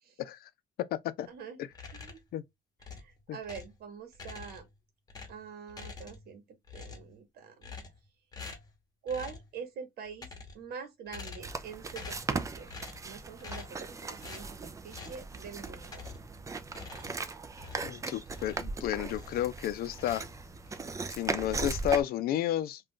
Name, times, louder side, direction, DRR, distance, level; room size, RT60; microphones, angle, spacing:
voice 1, 0.2-0.5 0.8-1.3 1.6-1.7 2.3-2.4 3.3-3.4 17.8-20.2 21.1-22.8, left 12 dB, 65° left, 0.4 m, -32 dB
voice 2, 1.3-1.6 1.9-2.2 2.9-4.7 5.3-7.7 9.0-10.3 10.5-12.7 13.0-16.0, right 6 dB, 65° right, 1.1 m, -44 dB
sound 1, 1.7-2.3 2.8-3.8 4.1-4.8 5.1-6.4 6.6-7.2 7.6-8.1 8.3-8.7 9.1-9.5 10.0-10.7 11.1-11.6 11.9-12.3 12.7-13.1 13.4-13.8 14.2-14.5 14.9-15.2 15.8-16.3 16.7-18.7 19.1-19.6 19.9-20.8, left 4 dB, 20° left, 1.0 m, -46 dB
sound 2, 11.4-22.0, right 4 dB, 20° right, 0.4 m, -38 dB
2.4 x 2.4 x 3.6 m
cardioid pair, 110°, 17 cm